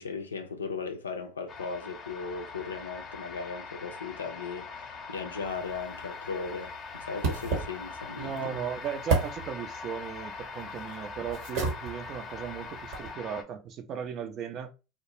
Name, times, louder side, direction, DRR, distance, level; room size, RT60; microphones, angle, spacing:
voice 1, 0.0-8.6, left 5 dB, 90° left, 0.4 m, -37 dB
sound 1, 1.5-13.4, left 4 dB, 40° left, 0.6 m, -42 dB
sound 2, 5.4-13.1, right 4 dB, 65° right, 1.0 m, -35 dB
voice 2, 8.2-14.7, right 7 dB, 50° right, 0.5 m, -37 dB
2.3 x 2.0 x 3.0 m
hypercardioid pair, 75°, 0 cm